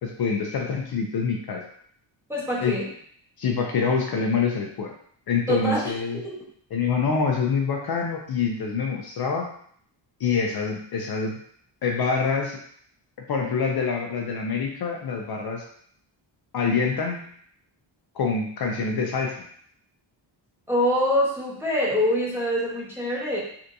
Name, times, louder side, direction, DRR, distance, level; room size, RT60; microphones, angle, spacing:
voice 1, 0.0-1.6 2.6-2.8 3.4-4.9 5.3-6.2 6.7-9.5 10.2-11.4 11.8-12.6 13.3-15.6 16.5-17.2 18.1-19.4, left 5 dB, 55° left, 0 dB, 0.5 m, -25 dB
voice 2, 2.3-2.9 5.5-6.3 20.7-23.4, equal, 5° right, -6 dB, 0.9 m, -25 dB
3.4 x 2.7 x 2.6 m, 0.62 s
wide cardioid pair, 120°, 46 cm